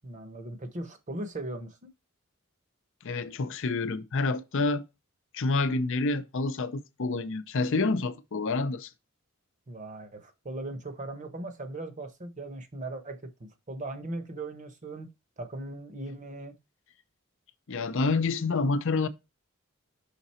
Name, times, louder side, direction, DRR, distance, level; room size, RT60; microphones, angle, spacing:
voice 1, 0.0-1.9 9.7-15.1 15.4-16.6, right 2 dB, 35° right, 1.0 m, -39 dB
voice 2, 3.0-4.8 5.3-8.9 17.7-19.1, left 3 dB, 65° left, 0.6 m, -28 dB
5.9 x 3.9 x 4.2 m
head